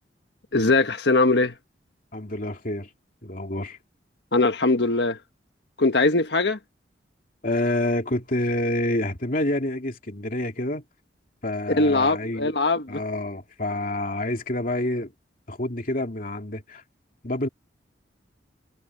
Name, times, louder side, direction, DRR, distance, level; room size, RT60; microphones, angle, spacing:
voice 1, 0.5-1.6 4.3-5.2 5.8-6.6 11.8-13.0, left 2 dB, 70° left, 1.6 m, -21 dB
voice 2, 2.1-2.9 3.2-3.8 7.4-10.8 11.4-12.6 12.9-15.1 15.5-16.8 17.2-17.5, left 1 dB, 50° left, 2.6 m, -28 dB
head